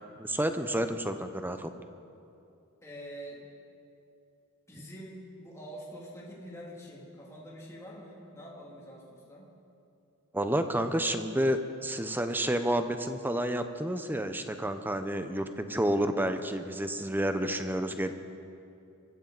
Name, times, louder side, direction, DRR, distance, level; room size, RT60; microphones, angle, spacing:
voice 1, 0.2-1.7 10.3-18.1, right 1 dB, 10° right, 8 dB, 0.7 m, -30 dB
voice 2, 2.8-3.5 4.7-9.5, equal, 15° left, -4 dB, 2.6 m, -45 dB
24.0 x 14.0 x 4.0 m, 2.7 s
head